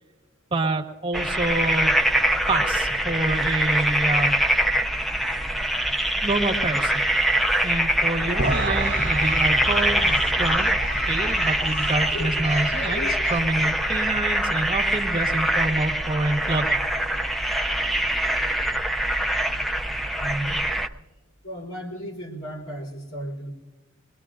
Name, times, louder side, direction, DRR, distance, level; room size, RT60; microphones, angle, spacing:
voice 1, 0.5-1.9 2.5-4.4 6.2-7.0 7.6-10.7 11.1-16.8, right 2 dB, 25° right, 0 dB, 1.3 m, -27 dB
sound 1, 1.1-20.9, right 1 dB, ahead, 0.4 m, -24 dB
Alarm, 8.3-13.4, left 2 dB, 50° left, 0.9 m, -36 dB
sound 2, 8.4-14.8, right 2 dB, 55° right, 0.9 m, -33 dB
voice 2, 20.2-20.6 21.4-23.5, right 1 dB, 75° left, -2 dB, 3.9 m, -34 dB
21.5 x 21.0 x 2.5 m, 1.3 s
head